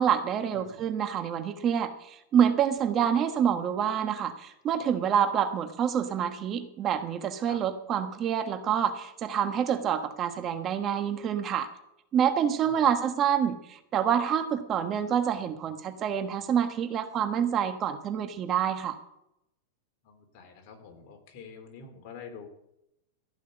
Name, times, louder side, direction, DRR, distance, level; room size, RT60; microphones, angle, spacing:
voice 1, 0.0-11.7 12.1-19.0, right 8 dB, 30° right, 9 dB, 1.2 m, -27 dB
voice 2, 0.5-0.9 7.5-7.6 12.6-12.9 20.0-22.5, left 6 dB, 50° left, 3 dB, 3.5 m, -47 dB
15.5 x 6.0 x 9.0 m, 0.82 s
supercardioid pair, 135°, 0 cm